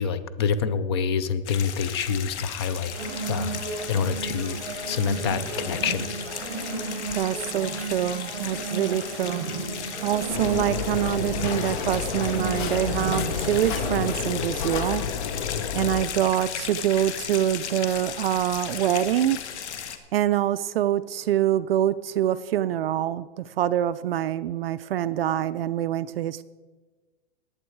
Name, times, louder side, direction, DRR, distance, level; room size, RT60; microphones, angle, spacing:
voice 1, 0.0-3.6 3.9-4.6 4.9-6.1, left 6 dB, 25° left, 13 dB, 0.4 m, -27 dB
sound 1, 1.5-20.0, left 8 dB, 70° left, 1.7 m, -36 dB
sound 2, 2.9-14.5, right 4 dB, 40° right, 5.3 m, -34 dB
voice 2, 7.1-9.4 10.0-15.1 15.7-19.4 20.1-26.4, right 11 dB, 55° right, 13 dB, 0.5 m, -25 dB
sound 3, 10.3-16.1, left 7 dB, 45° left, 0.9 m, -30 dB
20.0 x 8.0 x 4.6 m, 1.3 s
supercardioid pair, 165°, 35 cm